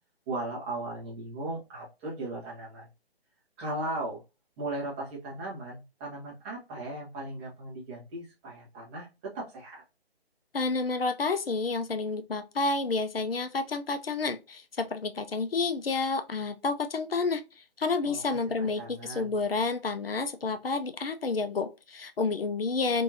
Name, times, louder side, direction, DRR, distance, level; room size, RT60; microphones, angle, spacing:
voice 1, 0.3-2.9 3.6-4.2 4.6-9.1 9.3-9.8 18.0-18.2 18.8-19.3, right 2 dB, 10° right, 0.8 m, -37 dB
voice 2, 10.5-17.4 17.8-23.0, left 4 dB, 70° left, 0.6 m, -30 dB
3.6 x 2.7 x 2.7 m
figure-of-eight pair, 140°, 31 cm